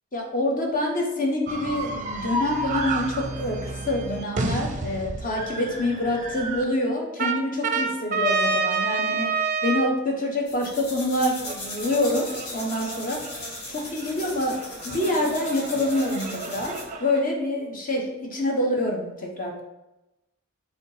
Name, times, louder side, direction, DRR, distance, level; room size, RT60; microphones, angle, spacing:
voice 1, 0.1-13.3 13.7-19.6, left 1 dB, 40° left, 1 dB, 1.2 m, -26 dB
sound 1, 1.5-6.6 7.2-9.9 11.4-17.2, right 4 dB, 35° right, 0.6 m, -30 dB
sound 2, 10.5-16.9, left 2 dB, 85° left, 1.8 m, -38 dB
5.5 x 3.6 x 5.0 m, 0.95 s
head